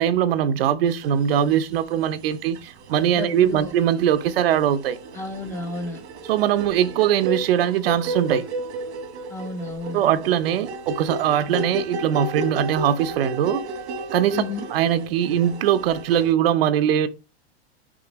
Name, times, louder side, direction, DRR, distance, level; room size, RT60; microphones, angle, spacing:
voice 1, 0.0-5.0 6.3-8.5 9.9-13.6 14.1-14.4 14.7-17.1, right 10 dB, 60° right, 0.7 m, -21 dB
sound 1, 1.0-1.8 2.2-16.3, right 2 dB, 85° right, 1.6 m, -33 dB
voice 2, 3.1-3.7 5.1-6.0 9.3-10.0 14.3-14.7, left 3 dB, 10° left, 0.5 m, -32 dB
6.2 x 5.2 x 3.0 m
supercardioid pair, 160°, 33 cm